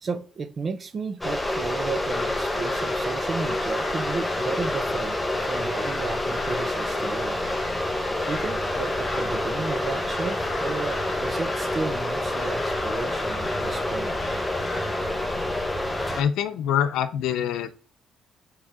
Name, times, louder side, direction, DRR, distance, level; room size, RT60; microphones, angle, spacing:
voice 1, 0.0-5.2 5.4-7.4 8.3-14.1, right 4 dB, 40° right, 0.7 m, -33 dB
sound 1, 1.2-16.2, left 1 dB, 5° left, 1.0 m, -28 dB
Crow, 2.1-16.3, left 3 dB, 30° left, 1.9 m, -38 dB
voice 2, 16.2-17.8, left 9 dB, 85° left, 0.7 m, -25 dB
6.3 x 4.9 x 3.6 m
cardioid pair, 105°, 0 cm